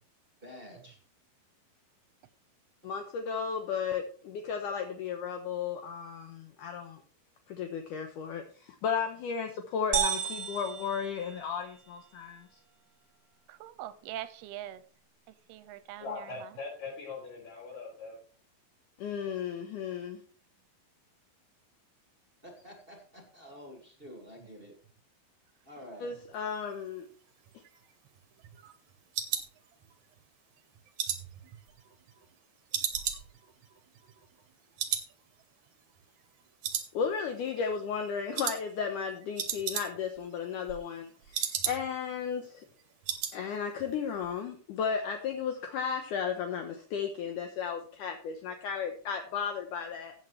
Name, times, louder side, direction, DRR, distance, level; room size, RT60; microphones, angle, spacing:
voice 1, 0.4-1.0 22.4-24.7 25.6-26.1, equal, 30° right, 1 dB, 1.0 m, -49 dB
voice 2, 2.8-7.0 7.5-12.5 19.0-20.2 26.0-27.1 36.9-42.7 43.3-50.1, left 6 dB, 75° left, 5 dB, 1.9 m, -34 dB
sound 1, 9.9-11.9, right 8 dB, 50° right, 1.2 m, -33 dB
voice 3, 13.5-14.8 15.5-16.5, right 12 dB, 80° right, 13 dB, 2.5 m, -43 dB
voice 4, 16.0-18.2, left 4 dB, 55° left, -9 dB, 6.7 m, -41 dB
sound 2, 27.5-30.2 30.6-32.4 32.7-34.5 34.8-35.1 35.4-35.5 36.0-36.4 36.6-37.4 37.7-38.0 38.4-38.6 38.9-39.0 39.2-40.2 40.5-42.1 42.4-42.5 42.8-43.4 43.7-43.9 44.2-44.3, right 9 dB, 65° right, 1.9 m, -35 dB
15.5 x 8.2 x 3.2 m, 0.43 s
omnidirectional pair, 4.8 m